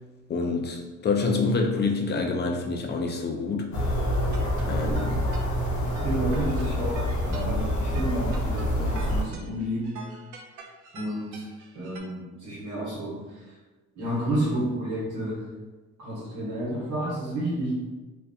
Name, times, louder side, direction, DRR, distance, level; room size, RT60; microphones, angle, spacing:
voice 1, 0.3-3.7 4.7-5.2, left 4 dB, 35° left, 2 dB, 0.4 m, -27 dB
sound 1, 3.7-9.2, equal, 70° left, 0.7 m, -27 dB
sound 2, 4.3-12.0, right 3 dB, 90° right, 0.5 m, -45 dB
voice 2, 6.0-10.0 10.9-11.5 11.7-13.6 13.9-15.5 16.0-17.9, right 1 dB, 60° right, -8 dB, 1.0 m, -30 dB
2.4 x 2.1 x 2.6 m, 1.2 s
cardioid pair, 90°, 30 cm